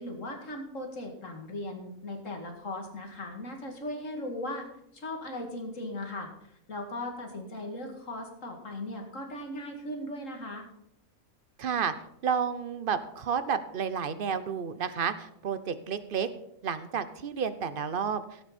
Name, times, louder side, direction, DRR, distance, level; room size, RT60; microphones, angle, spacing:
voice 1, 0.0-4.6 4.9-10.6, left 1 dB, 60° left, 3 dB, 2.4 m, -38 dB
voice 2, 11.6-11.9 12.2-16.3 16.6-18.4, right 7 dB, 45° right, 12 dB, 0.9 m, -31 dB
17.5 x 8.1 x 4.3 m, 0.76 s
omnidirectional pair, 1.5 m